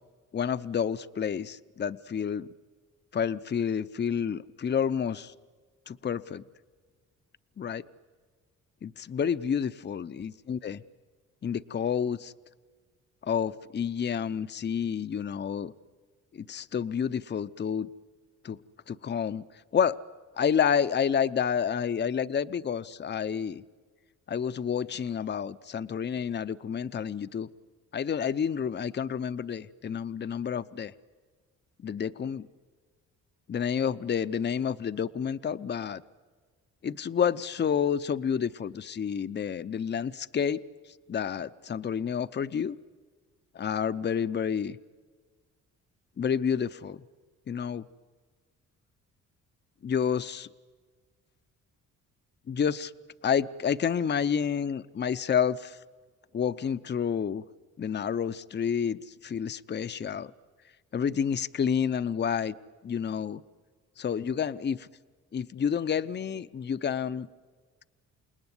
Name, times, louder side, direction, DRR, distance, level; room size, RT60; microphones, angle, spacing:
voice 1, 0.3-2.5 3.1-5.3 5.9-6.4 7.6-7.8 8.8-10.8 11.4-12.3 13.2-15.7 16.3-17.9 18.4-18.6 18.9-19.4 19.7-20.0 20.4-23.6 24.3-27.5 27.9-30.9 31.8-32.5 33.5-36.0 36.8-40.6 41.1-42.8 43.5-44.8 46.2-47.0 47.5-47.9 49.8-50.5 52.5-52.9 53.2-55.8 56.3-57.4 57.8-60.3 60.9-62.5 62.8-63.4 64.0-64.9 65.3-67.3, left 7 dB, 35° left, 13 dB, 0.8 m, -29 dB
29.0 x 19.5 x 9.7 m, 1.5 s
cardioid pair, 90°, 30 cm